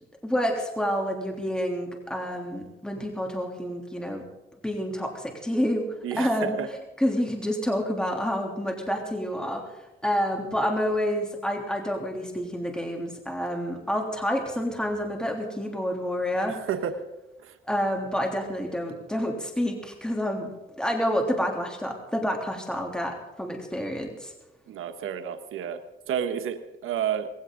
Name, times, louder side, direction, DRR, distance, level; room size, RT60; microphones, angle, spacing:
voice 1, 0.2-4.2 4.6-6.6 7.0-9.6 10.0-16.7 17.7-20.5 20.8-24.3, equal, 5° left, 2 dB, 3.3 m, -28 dB
voice 2, 6.0-6.7 16.5-17.0 17.4-17.6 24.7-25.8 26.1-27.3, right 9 dB, 90° right, 7 dB, 1.3 m, -30 dB
20.0 x 16.5 x 3.9 m, 1.0 s
cardioid pair, 80°, 21 cm